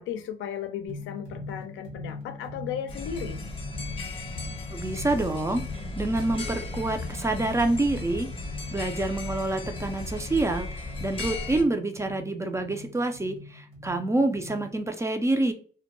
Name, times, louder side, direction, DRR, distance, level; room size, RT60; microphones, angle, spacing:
voice 1, 0.0-3.4, left 9 dB, 80° left, 0.4 m, -35 dB
sound 1, 0.9-14.8, left 3 dB, 85° right, 0.9 m, -43 dB
sound 2, 2.9-11.6, left 3 dB, 25° left, 0.6 m, -36 dB
voice 2, 4.7-5.6 6.0-8.3 8.7-15.5, right 2 dB, 15° right, 0.3 m, -27 dB
2.2 x 2.1 x 3.0 m
cardioid pair, 90°, 20 cm